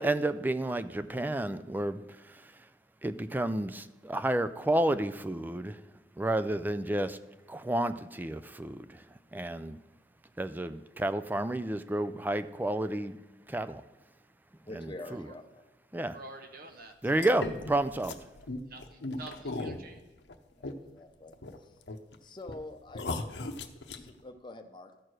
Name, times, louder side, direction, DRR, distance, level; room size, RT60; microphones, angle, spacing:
voice 1, 0.0-2.7 3.0-5.8 6.2-7.2 7.5-9.8 10.4-13.2 13.5-13.8 14.7-15.3 15.9-16.2 17.0-18.2, right 1 dB, 10° right, 12 dB, 0.3 m, -31 dB
voice 2, 14.6-15.4 20.6-21.8 22.2-23.5 24.0-24.9, left 2 dB, 25° left, 5 dB, 0.7 m, -46 dB
voice 3, 16.1-17.3 18.6-20.0, right 2 dB, 55° right, 4 dB, 1.2 m, -48 dB
sound 1, 17.2-21.0 21.3-22.1 22.5-22.6 22.9-24.1, left 2 dB, 80° left, 0.8 m, -37 dB
13.5 x 4.6 x 6.3 m, 1.1 s
head